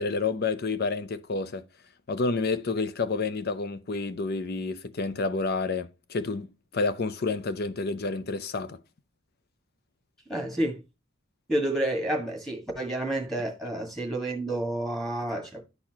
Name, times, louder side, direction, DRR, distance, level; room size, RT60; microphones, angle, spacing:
voice 1, 0.0-1.6 2.1-6.5 6.7-8.8, left 3 dB, 50° left, 0.6 m, -29 dB
voice 2, 10.3-10.8 11.5-15.6, right 1 dB, ahead, 1.6 m, -29 dB
11.0 x 4.2 x 2.8 m
head